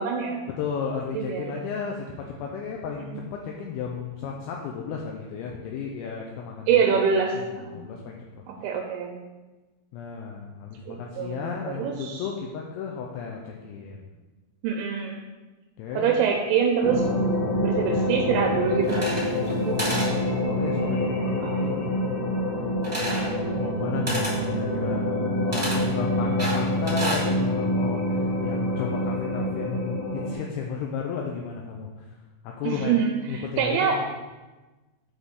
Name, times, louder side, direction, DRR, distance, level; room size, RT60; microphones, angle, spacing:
voice 1, 0.0-0.4 1.1-1.7 6.7-7.8 8.6-9.2 10.9-12.2 14.6-15.3 15.9-17.1 17.6-20.4 21.4-21.8 23.6-24.0 32.6-34.0, right 6 dB, 80° right, 2 dB, 2.8 m, -26 dB
voice 2, 0.6-6.9 7.3-8.2 9.9-14.1 15.8-16.1 19.6-20.2 20.4-22.2 23.0-25.1 25.4-32.1 32.4-32.9 33.3-33.9, left 6 dB, 80° left, -1 dB, 2.8 m, -34 dB
sound 1, 16.8-30.3, left 1 dB, 60° left, 2.4 m, -26 dB
sound 2, 18.8-19.5 19.8-20.1 22.8-23.3 24.1-24.4 25.5-25.8 26.4-27.3, right 1 dB, 10° right, 0.8 m, -30 dB
8.1 x 3.8 x 6.8 m, 1.2 s
omnidirectional pair, 5.8 m